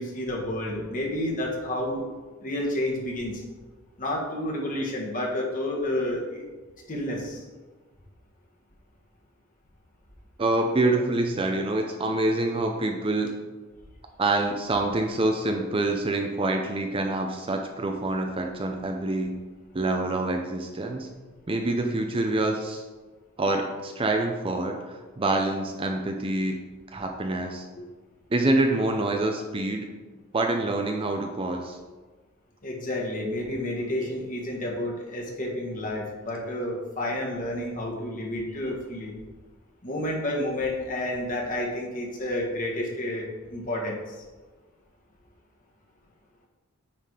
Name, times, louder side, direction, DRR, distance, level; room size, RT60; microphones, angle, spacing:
voice 1, 0.0-2.0 2.4-3.4 4.0-6.4 6.9-7.4 32.6-39.1 39.8-44.0, left 1 dB, 40° left, -1 dB, 1.6 m, -30 dB
voice 2, 10.4-13.3 14.2-19.4 19.7-21.1 21.5-22.8 23.4-26.6 26.9-27.7 28.3-29.9 30.3-31.8, right 2 dB, 25° right, 3 dB, 0.5 m, -26 dB
9.1 x 4.1 x 4.9 m, 1.3 s
head